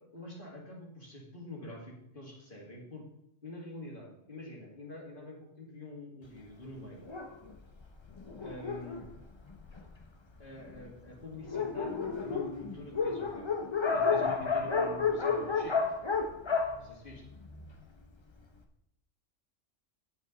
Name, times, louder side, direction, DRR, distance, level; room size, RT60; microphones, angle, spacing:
voice 1, 0.1-3.0 3.4-7.1 8.4-9.1 10.4-13.5 13.9-15.9 16.8-17.2, left 1 dB, 45° left, -2 dB, 2.5 m, -46 dB
Dog, 7.1-10.0 10.7-10.8 11.1-11.2 11.4-17.8, left 5 dB, 25° left, 0.7 m, -32 dB
9.2 x 8.3 x 4.0 m, 0.77 s
omnidirectional pair, 1.3 m